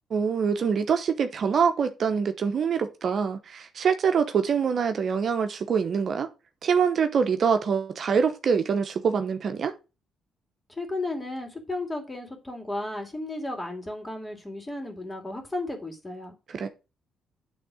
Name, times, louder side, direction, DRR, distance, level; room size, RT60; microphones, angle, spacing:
voice 1, 0.1-6.3 6.6-9.7 16.5-16.7, right 6 dB, 55° right, 0.9 m, -25 dB
voice 2, 10.7-16.3, left 2 dB, 15° left, 2.6 m, -34 dB
9.0 x 3.7 x 6.2 m
cardioid pair, 90°, 0 cm